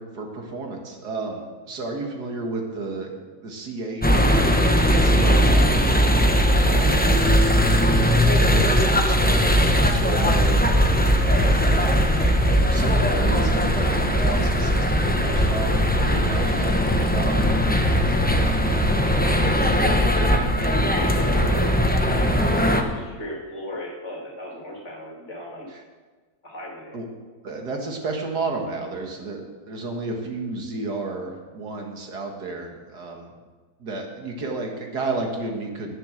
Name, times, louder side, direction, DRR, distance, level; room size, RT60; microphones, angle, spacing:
voice 1, 0.0-4.7 4.9-5.7 8.5-10.7 11.7-17.5 25.7-25.8 26.9-27.1 27.4-33.3 33.8-36.0, right 3 dB, 75° right, 2 dB, 2.3 m, -32 dB
sound 1, 4.0-22.8, equal, 10° left, 0.6 m, -19 dB
voice 2, 6.6-7.2 18.6-21.7 22.1-25.7 26.4-27.0, left 1 dB, 45° left, -2 dB, 2.6 m, -36 dB
10.5 x 9.8 x 6.5 m, 1.4 s
omnidirectional pair, 1.7 m